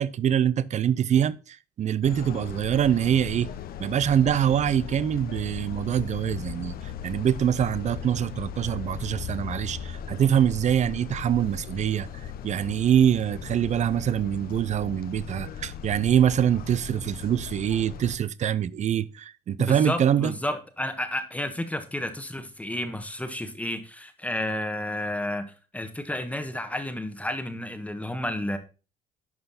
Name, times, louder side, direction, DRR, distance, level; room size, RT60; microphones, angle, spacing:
voice 1, 0.0-3.5 3.8-12.1 12.4-20.3, right 9 dB, 45° right, 0.6 m, -24 dB
sound 1, 2.0-18.2, left 8 dB, 60° left, 0.9 m, -38 dB
voice 2, 19.6-28.6, left 1 dB, 10° left, 1.3 m, -31 dB
11.0 x 5.6 x 4.2 m
cardioid pair, 110°, 17 cm